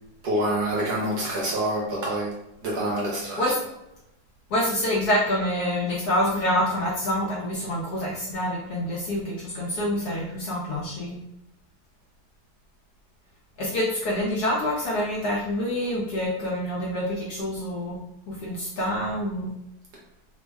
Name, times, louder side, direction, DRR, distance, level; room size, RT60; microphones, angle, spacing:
voice 1, 0.2-2.3 2.6-3.4, right 1 dB, 65° right, -3 dB, 1.2 m, -26 dB
voice 2, 4.5-11.2 13.6-18.0 18.3-19.5, left 1 dB, 65° left, -4 dB, 1.0 m, -26 dB
3.4 x 2.0 x 3.3 m, 0.85 s
omnidirectional pair, 2.2 m